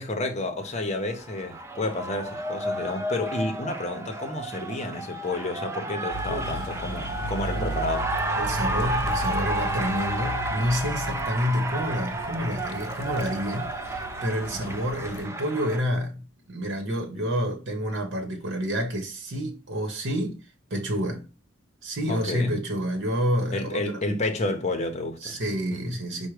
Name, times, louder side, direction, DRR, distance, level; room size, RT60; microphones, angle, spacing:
voice 1, 0.0-8.1 14.5-14.9 22.1-22.6 23.5-25.4 25.7-26.0, left 2 dB, 35° left, 0.8 m, -30 dB
Cheering, 0.6-15.8, right 1 dB, 15° right, 0.4 m, -32 dB
sound 1, 6.1-15.3, equal, 80° left, 0.5 m, -36 dB
voice 2, 6.2-6.6 7.2-7.8 8.3-20.4 20.7-21.2 21.8-24.0 25.2-26.3, equal, 55° right, 1.1 m, -29 dB
4.6 x 2.2 x 4.8 m
head